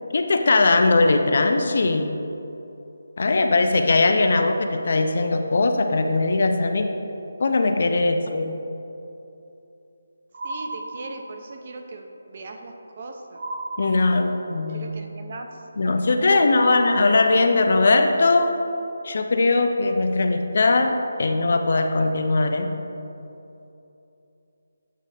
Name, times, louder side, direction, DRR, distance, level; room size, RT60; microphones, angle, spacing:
voice 1, 0.1-2.2 3.2-6.9 7.4-8.6 13.8-14.9 15.8-18.5 19.0-22.7, left 3 dB, 45° left, 6 dB, 0.4 m, -20 dB
sound 1, 10.3-11.6 13.4-14.6 16.6-17.8, right 2 dB, 50° right, 0.8 m, -34 dB
voice 2, 10.4-13.4 14.2-14.3 14.7-17.0, right 3 dB, 35° right, 4 dB, 0.5 m, -39 dB
8.4 x 3.2 x 4.9 m, 2.9 s
hypercardioid pair, 175°, 0 cm